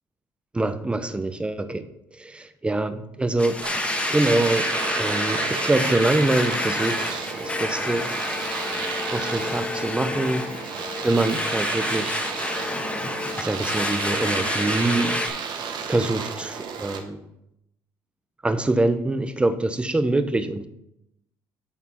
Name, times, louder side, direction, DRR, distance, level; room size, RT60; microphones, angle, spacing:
voice 1, 0.5-3.6 4.1-8.1 9.1-10.5 11.0-12.2 13.4-15.2 15.9-17.2 18.4-20.7, right 2 dB, 10° right, 11 dB, 0.6 m, -25 dB
Domestic sounds home sounds, 3.4-15.3, left 2 dB, 15° left, 1.3 m, -28 dB
Domestic sounds home sounds 2, 3.6-17.0, right 6 dB, 55° right, 1.1 m, -32 dB
11.0 x 4.2 x 4.3 m, 0.83 s
cardioid pair, 105°, 9 cm